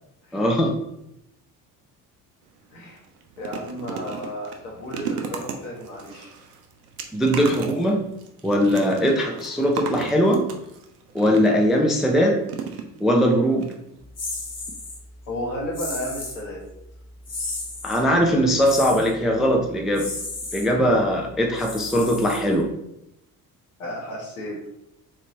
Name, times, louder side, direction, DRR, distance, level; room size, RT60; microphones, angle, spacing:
voice 1, 0.3-0.7 7.1-8.0 8.4-10.4 11.1-12.4 13.0-13.7 17.8-20.1 20.5-22.7, equal, ahead, 1 dB, 0.3 m, -20 dB
sound 1, 2.4-2.6 3.0-11.8 12.5-13.3 13.6-13.7 14.0-14.1, right 6 dB, 80° right, 0.6 m, -35 dB
voice 2, 2.7-3.0 3.4-6.3 15.3-16.6 23.8-24.7, equal, 75° left, -3 dB, 1.2 m, -33 dB
sound 2, 14.2-15.0 15.7-16.4 17.2-18.0 18.6-19.1 19.9-20.7 21.5-22.7, left 2 dB, 35° left, 1.0 m, -33 dB
3.3 x 2.8 x 2.8 m, 0.81 s
figure-of-eight pair, 50°, 46 cm